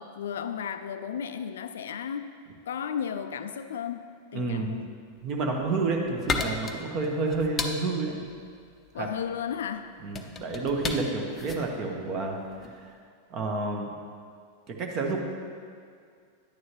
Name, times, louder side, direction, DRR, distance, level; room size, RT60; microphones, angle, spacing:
voice 1, 0.0-2.3 2.7-4.1 4.3-4.9 8.9-10.0, left 8 dB, 60° left, 10 dB, 0.3 m, -34 dB
voice 2, 4.3-4.8 5.2-8.1 8.9-9.1 10.0-12.4 12.6-12.9 13.3-13.9 14.7-15.3, right 3 dB, 35° right, 1 dB, 1.2 m, -29 dB
sound 1, 5.4-12.8, left 4 dB, 20° left, 0.6 m, -35 dB
10.0 x 9.2 x 3.1 m, 2.2 s
figure-of-eight pair, 90°, 0 cm